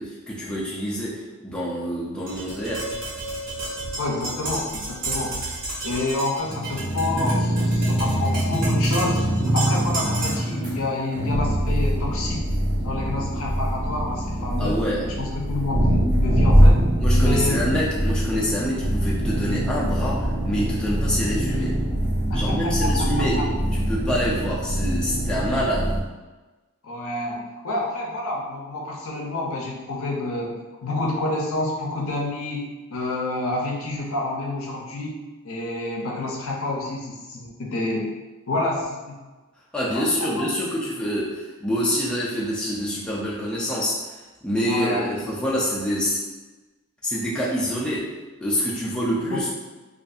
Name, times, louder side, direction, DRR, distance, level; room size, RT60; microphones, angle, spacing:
voice 1, 0.0-2.9 14.6-15.1 17.0-21.8 22.3-25.9 39.7-46.2 47.0-48.1 48.4-49.5, equal, 5° left, -7 dB, 0.3 m, -26 dB
Tap, 2.3-10.5, right 2 dB, 85° right, 1.3 m, -32 dB
voice 2, 4.0-5.5 5.8-9.2 9.5-12.4 12.8-16.8 17.1-17.7 22.3-23.1 23.4-23.5 26.8-35.2 35.4-38.1 38.5-39.1 39.9-40.5 44.6-45.1 49.3-49.5, left 2 dB, 65° left, -1 dB, 0.5 m, -28 dB
sound 1, 6.4-26.0, equal, 20° right, 1.0 m, -23 dB
2.6 x 2.4 x 2.3 m, 1.2 s
head